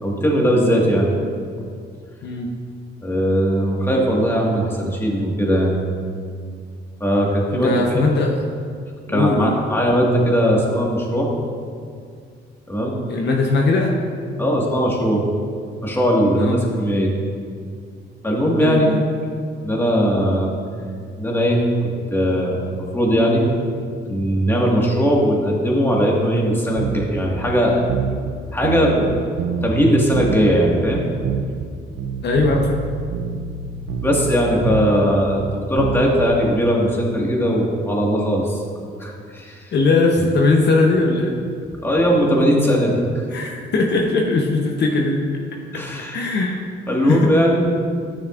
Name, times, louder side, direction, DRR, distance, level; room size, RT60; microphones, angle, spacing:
voice 1, 0.0-1.1 3.0-5.8 7.0-8.0 9.1-11.3 12.7-13.0 14.4-15.2 15.8-17.1 18.2-18.9 19.6-20.5 21.2-21.6 22.1-22.6 22.9-23.4 24.1-27.8 28.5-29.1 29.6-31.0 34.0-38.6 39.0-39.7 41.8-43.3 45.7-46.2 46.9-47.6, equal, 10° left, -2 dB, 1.7 m, -19 dB
voice 2, 7.5-8.3 9.1-9.5 13.1-14.0 16.3-16.6 18.6-19.0 32.2-32.8 39.7-41.4 43.3-45.2 45.7-45.8 46.1-46.6 47.0-47.3, left 3 dB, 60° left, 0 dB, 0.9 m, -19 dB
sound 1, 26.8-27.2 27.5-27.6 27.9-28.3 28.6-29.8 30.1-31.7 32.0-36.6, right 7 dB, 85° right, 0.5 m, -26 dB
12.5 x 6.3 x 2.5 m, 2.2 s
cardioid pair, 90°, 20 cm